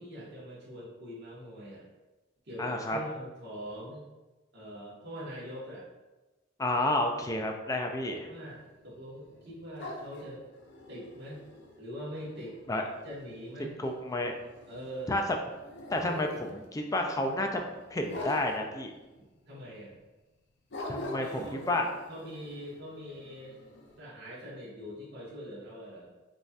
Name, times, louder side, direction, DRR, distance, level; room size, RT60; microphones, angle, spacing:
voice 1, 0.0-1.9 2.4-4.1 4.5-5.8 8.3-8.6 8.8-10.4 10.9-11.4 11.8-12.6 13.0-13.8 14.7-15.1 19.5-20.0 21.1-21.6 22.1-23.6 24.0-26.1, equal, 60° right, -6 dB, 1.4 m, -43 dB
voice 2, 2.6-3.0 6.6-8.3 12.7-12.8 13.8-14.3 15.1-15.2 15.9-17.6 17.9-18.9 20.9-21.9, left 1 dB, 15° left, 3 dB, 0.4 m, -30 dB
sound 1, 8.3-15.3 15.5-19.2 19.5-19.6 20.0-20.1 20.7-24.0, left 1 dB, 60° left, 0.6 m, -45 dB
5.1 x 2.8 x 2.4 m, 1.1 s
head